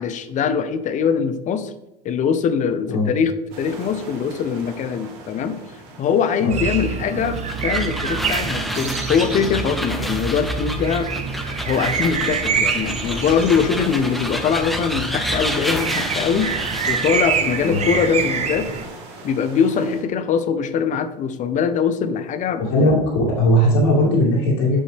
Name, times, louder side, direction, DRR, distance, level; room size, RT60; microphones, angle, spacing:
voice 1, 0.0-1.7 2.0-5.6 6.0-11.1 11.7-16.5 16.9-18.7 19.2-22.9, left 6 dB, 40° left, 11 dB, 0.7 m, -22 dB
sound 1, 3.5-20.0, right 2 dB, 70° right, 1.9 m, -40 dB
sound 2, 6.5-18.9, right 6 dB, 35° right, 0.8 m, -26 dB
sound 3, 7.2-17.3, equal, ahead, 0.8 m, -29 dB
voice 2, 22.6-24.8, equal, 70° left, -4 dB, 2.3 m, -18 dB
7.0 x 5.4 x 3.3 m, 0.93 s
supercardioid pair, 105°, 20 cm